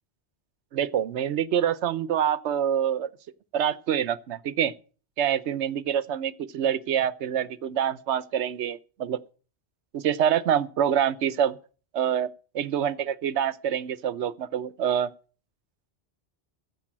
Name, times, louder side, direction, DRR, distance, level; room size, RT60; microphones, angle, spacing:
voice 1, 0.7-3.1 3.5-4.7 5.2-9.2 9.9-11.6 11.9-12.3 12.5-15.1, right 9 dB, 85° right, 1.0 m, -26 dB
15.0 x 5.3 x 8.4 m
omnidirectional pair, 1.1 m